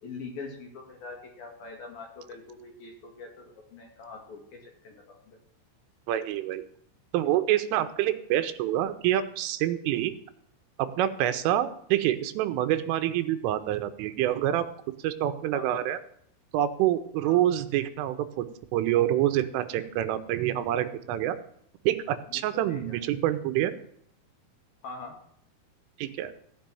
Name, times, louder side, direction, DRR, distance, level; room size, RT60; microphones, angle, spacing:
voice 1, 0.0-5.4 15.5-15.8 17.2-17.4 22.3-23.0 24.8-25.1, left 4 dB, 55° left, 2 dB, 3.3 m, -43 dB
voice 2, 6.1-6.6 7.1-10.1 10.8-14.7 15.0-16.0 16.5-18.5 18.7-21.4 21.9-23.7 26.0-26.3, right 12 dB, 85° right, 10 dB, 3.3 m, -26 dB
15.5 x 5.4 x 9.1 m, 0.68 s
omnidirectional pair, 5.8 m